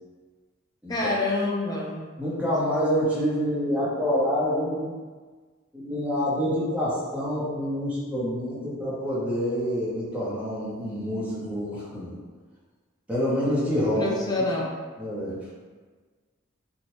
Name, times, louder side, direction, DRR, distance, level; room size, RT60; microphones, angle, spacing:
voice 1, 0.9-2.0 14.0-14.7, left 2 dB, 20° left, -3 dB, 0.4 m, -26 dB
voice 2, 2.2-4.9 5.7-12.2 13.1-14.1 15.0-15.4, equal, 5° right, -8 dB, 0.7 m, -27 dB
2.8 x 2.1 x 3.0 m, 1.5 s
head